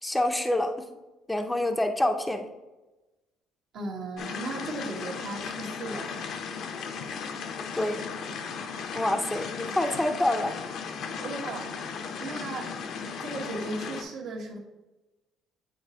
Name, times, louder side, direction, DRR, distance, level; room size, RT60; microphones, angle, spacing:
voice 1, 0.0-0.7 1.3-2.5 7.8-8.0 8.9-10.5, left 1 dB, 5° left, 5 dB, 0.5 m, -26 dB
voice 2, 3.7-6.4 11.2-11.7 12.2-12.7 13.2-14.6, right 2 dB, 70° right, -1 dB, 1.3 m, -36 dB
sound 1, 4.2-14.0, left 6 dB, 65° left, 0.7 m, -36 dB
8.8 x 4.1 x 2.8 m, 1.1 s
cardioid pair, 115°, 0 cm